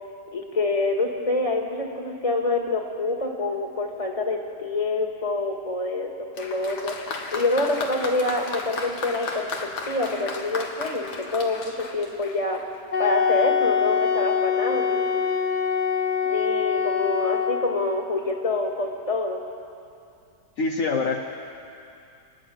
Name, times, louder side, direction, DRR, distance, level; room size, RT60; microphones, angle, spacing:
voice 1, 0.3-6.1 6.4-7.0 7.3-9.5 9.9-12.6 13.0-15.4 16.2-19.4, left 2 dB, 20° left, 2 dB, 2.0 m, -26 dB
Applause, 6.3-12.8, left 3 dB, 85° left, 2.2 m, -34 dB
Wind instrument woodwind instrument, 12.9-17.8, left 7 dB, 40° left, 0.7 m, -24 dB
voice 2, 20.6-21.2, left 4 dB, 55° left, 1 dB, 1.4 m, -24 dB
29.5 x 11.0 x 8.8 m, 2.6 s
omnidirectional pair, 1.7 m